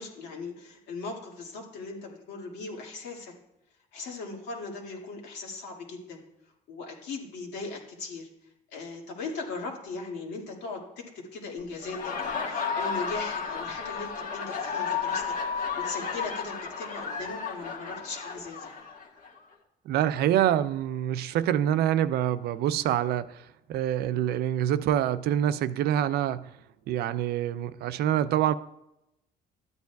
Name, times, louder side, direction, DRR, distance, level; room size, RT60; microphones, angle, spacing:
voice 1, 0.0-3.3 3.9-6.2 6.7-8.3 8.7-18.7, left 3 dB, 85° left, 2.0 m, -39 dB
Laughter, 11.7-19.4, left 6 dB, 50° left, 1.5 m, -33 dB
voice 2, 19.9-26.5 26.9-28.5, right 11 dB, 70° right, 0.4 m, -26 dB
13.0 x 9.3 x 2.3 m
cardioid pair, 110°, 17 cm